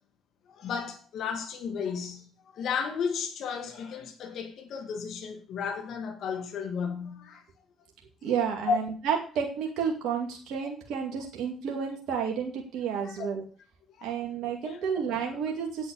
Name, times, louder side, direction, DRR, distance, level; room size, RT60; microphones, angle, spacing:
voice 1, 0.5-7.4 8.2-8.3 8.7-8.8 13.0-13.3 13.9-14.1 14.6-14.9 15.3-15.4, left 6 dB, 65° left, 2.1 m, -33 dB
voice 2, 8.2-13.4 14.0-15.9, right 7 dB, 75° right, 2.3 m, -31 dB
8.8 x 8.5 x 6.6 m
hypercardioid pair, 55°, 0 cm